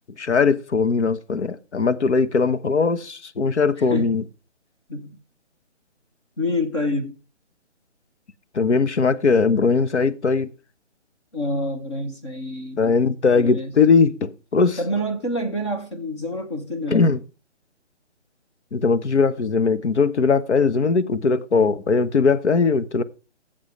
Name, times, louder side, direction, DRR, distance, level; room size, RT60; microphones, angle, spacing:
voice 1, 0.2-4.2 8.5-10.5 12.8-14.8 16.9-17.2 18.7-23.0, left 4 dB, 70° left, 1.1 m, -20 dB
voice 2, 6.4-7.2 11.3-12.9 13.4-13.7 14.8-17.0, left 1 dB, 25° left, 0.9 m, -27 dB
14.5 x 7.3 x 3.2 m
hypercardioid pair, 165°, 35 cm